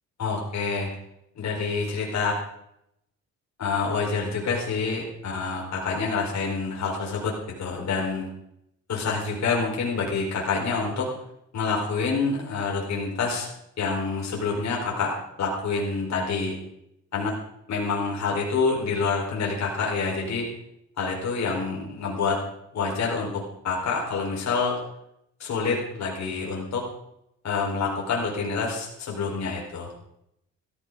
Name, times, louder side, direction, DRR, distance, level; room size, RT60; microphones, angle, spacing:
voice 1, 0.2-0.9 1.4-2.3 3.6-8.3 8.9-11.1 11.5-13.5 13.8-16.6 17.1-17.3 17.7-20.5 21.0-22.4 22.7-24.8 25.4-26.9 27.4-29.9, left 4 dB, 65° left, -2 dB, 4.6 m, -27 dB
15.5 x 15.0 x 4.0 m, 0.77 s
cardioid pair, 90°, 30 cm